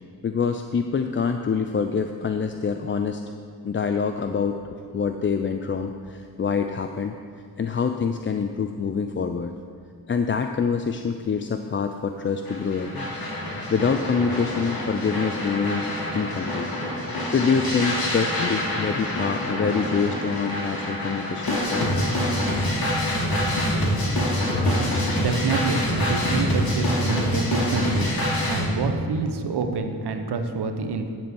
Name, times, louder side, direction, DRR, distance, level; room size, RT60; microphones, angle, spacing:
voice 1, 0.2-3.2 3.6-7.2 7.6-9.5 10.1-13.1 13.7-16.7 17.3-22.0, left 5 dB, 30° left, 7 dB, 0.4 m, -26 dB
sound 1, 12.5-28.7, left 1 dB, 65° left, 2.3 m, -26 dB
voice 2, 25.1-28.1 28.5-31.1, right 4 dB, 80° right, 6 dB, 0.8 m, -27 dB
10.5 x 4.4 x 6.8 m, 2.2 s
cardioid pair, 60°, 39 cm